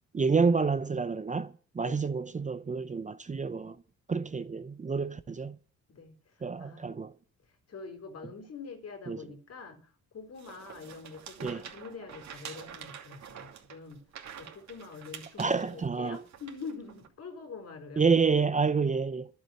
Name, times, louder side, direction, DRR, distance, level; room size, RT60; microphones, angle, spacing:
voice 1, 0.1-3.8 4.1-5.6 6.4-7.1 9.1-9.2 11.4-11.6 15.4-16.2 18.0-19.3, right 5 dB, 25° right, 0.8 m, -28 dB
voice 2, 5.9-7.0 7.4-14.0 14.3-18.1, left 4 dB, 55° left, 4.2 m, -45 dB
sound 1, 10.4-17.1, right 8 dB, 65° right, 2.7 m, -47 dB
11.5 x 7.7 x 9.1 m
cardioid pair, 90°, 30 cm